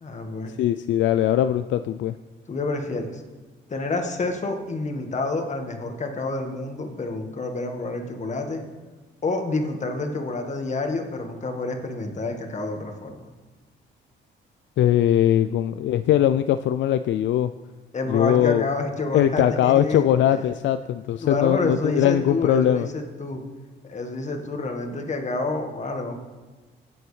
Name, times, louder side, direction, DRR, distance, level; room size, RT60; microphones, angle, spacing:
voice 1, 0.0-0.5 2.5-3.2 3.7-8.6 9.2-13.3 17.9-20.0 20.3-20.4 21.2-23.4 23.8-26.2, left 2 dB, 35° left, 4 dB, 1.6 m, -28 dB
voice 2, 0.6-2.1 14.8-17.5 18.1-18.7 19.1-22.9, left 11 dB, 70° left, 11 dB, 0.4 m, -21 dB
16.5 x 7.8 x 3.3 m, 1.3 s
cardioid pair, 90°, 20 cm